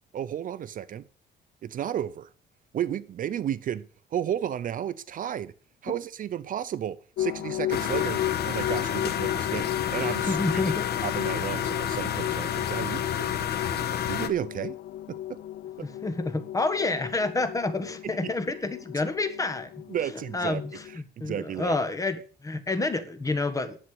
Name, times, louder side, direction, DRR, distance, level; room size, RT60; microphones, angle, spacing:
voice 1, 0.1-1.0 1.6-2.3 2.7-3.8 4.1-5.5 5.8-8.2 8.5-10.6 11.0-13.3 13.7-14.8 15.1-15.4 15.8-15.9 19.9-20.6 20.9-21.8, right 10 dB, 50° right, 0.6 m, -33 dB
sound 1, 7.2-21.0, left 13 dB, 80° left, 0.6 m, -35 dB
sound 2, 7.7-14.3, left 9 dB, 65° left, 1.4 m, -30 dB
voice 2, 10.2-10.9 15.8-19.7 20.3-23.8, left 3 dB, 20° left, 1.6 m, -29 dB
11.0 x 8.0 x 7.9 m
cardioid pair, 145°, 18 cm